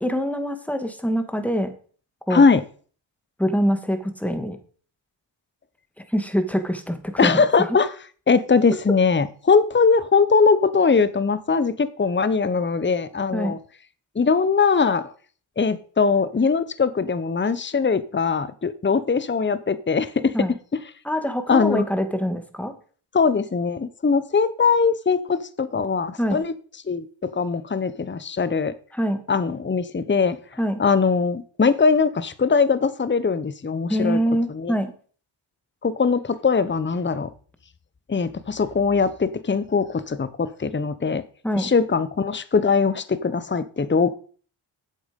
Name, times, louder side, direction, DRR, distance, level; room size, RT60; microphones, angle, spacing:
voice 1, 0.0-1.7 2.3-2.4 3.4-4.6 6.1-7.8 13.3-13.6 20.3-20.5 21.0-22.7 26.2-26.4 28.9-29.2 30.6-30.8 33.9-34.9 41.4-41.7, equal, 5° left, 2.1 m, -24 dB
voice 2, 2.3-2.6 7.2-7.9 8.3-13.6 14.1-15.1 15.6-20.3 21.5-21.8 23.1-26.5 26.9-28.7 29.3-30.4 30.8-34.2 34.5-34.7 35.8-37.3 38.1-41.2 41.6-44.1, left 5 dB, 20° left, 0.9 m, -21 dB
8.0 x 7.9 x 5.3 m
supercardioid pair, 45°, 50 cm